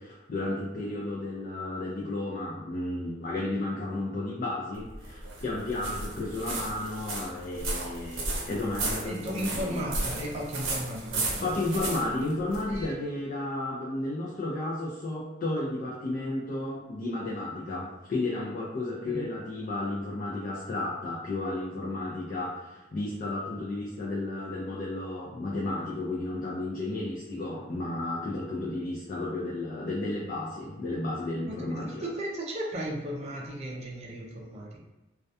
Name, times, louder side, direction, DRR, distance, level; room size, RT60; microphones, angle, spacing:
voice 1, 0.0-9.8 11.4-32.1, left 2 dB, 45° left, -5 dB, 0.4 m, -33 dB
sound 1, 4.7-12.9, right 2 dB, 90° right, 0.6 m, -34 dB
voice 2, 9.0-11.5 19.0-19.2 31.4-34.8, equal, 35° right, -2 dB, 0.4 m, -35 dB
2.2 x 2.2 x 2.6 m, 1.0 s
head